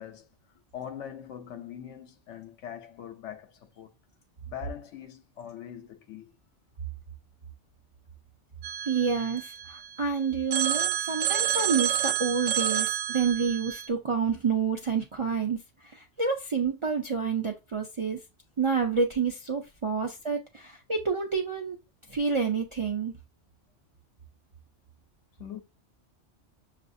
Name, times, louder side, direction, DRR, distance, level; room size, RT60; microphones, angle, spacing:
voice 1, 0.0-3.9 4.5-6.4 25.4-25.6, left 9 dB, 85° left, 0.9 m, -42 dB
Telephone, 8.6-10.0 10.5-13.9, right 10 dB, 80° right, 0.9 m, -29 dB
voice 2, 8.8-18.2 18.6-21.8 22.1-23.1, right 5 dB, 55° right, 0.3 m, -28 dB
6.2 x 2.5 x 2.5 m
omnidirectional pair, 1.2 m